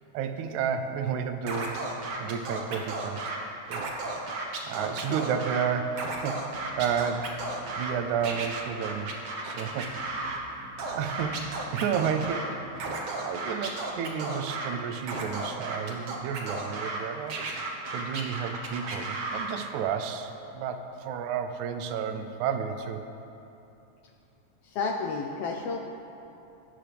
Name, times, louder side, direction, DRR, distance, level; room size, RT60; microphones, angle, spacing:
voice 1, 0.1-1.8 2.2-3.3 3.7-3.8 4.6-7.3 7.8-9.1 9.4-10.0 10.6-17.4 17.9-23.0, right 7 dB, 85° right, 7 dB, 2.0 m, -31 dB
Scratching (performance technique), 1.5-3.4 3.7-5.6 5.9-7.9 8.2-10.4 10.8-12.4 12.7-14.7 15.0-17.0 17.3-19.5, right 3 dB, 60° right, 1.2 m, -34 dB
sound 1, 6.5-12.8, equal, 40° left, 2.4 m, -49 dB
voice 2, 24.6-25.8, left 4 dB, 80° left, 2 dB, 1.3 m, -32 dB
17.5 x 7.4 x 3.4 m, 2.9 s
omnidirectional pair, 3.3 m